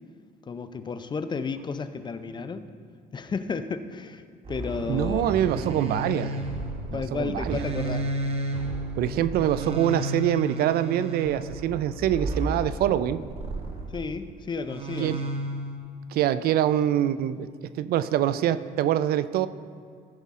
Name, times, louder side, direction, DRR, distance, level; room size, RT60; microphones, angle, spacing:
voice 1, 0.5-2.6 3.1-4.2 4.5-5.2 6.9-8.0 13.9-15.3, left 5 dB, 25° left, 10 dB, 0.5 m, -32 dB
sound 1, 4.5-14.0 14.7-15.8, right 2 dB, 35° right, 1.0 m, -32 dB
voice 2, 4.9-6.4 6.9-7.6 9.0-13.2 15.0-15.2 16.1-17.5 17.8-19.5, right 11 dB, 65° right, 14 dB, 0.4 m, -25 dB
15.0 x 5.5 x 3.6 m, 2.2 s
cardioid pair, 110°, 17 cm